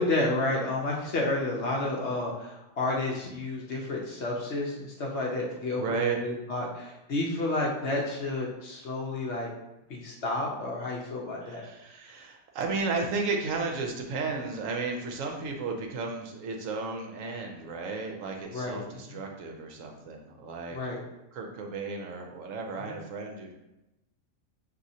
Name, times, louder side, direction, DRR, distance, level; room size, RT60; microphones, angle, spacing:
voice 1, 0.0-9.5 9.9-11.6 18.5-18.8 19.1-19.2 20.7-21.0 22.8-22.9, left 2 dB, 60° left, -2 dB, 0.8 m, -31 dB
voice 2, 5.8-6.2 11.4-20.8 21.3-23.5, right 4 dB, 70° right, 2 dB, 0.9 m, -33 dB
6.0 x 2.7 x 2.7 m, 0.94 s
omnidirectional pair, 1.6 m